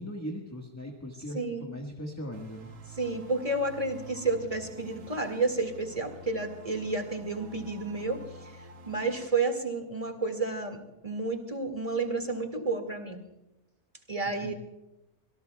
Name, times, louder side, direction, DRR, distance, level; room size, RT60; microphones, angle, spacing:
voice 1, 0.0-2.7 14.4-14.5, equal, 10° left, 1 dB, 1.4 m, -39 dB
voice 2, 1.3-1.7 3.0-8.5 8.9-13.2 14.1-14.5, right 3 dB, 25° right, 5 dB, 2.0 m, -31 dB
sound 1, 2.3-9.3, right 2 dB, 60° right, 1.3 m, -48 dB
26.0 x 17.5 x 2.3 m, 0.92 s
omnidirectional pair, 1.6 m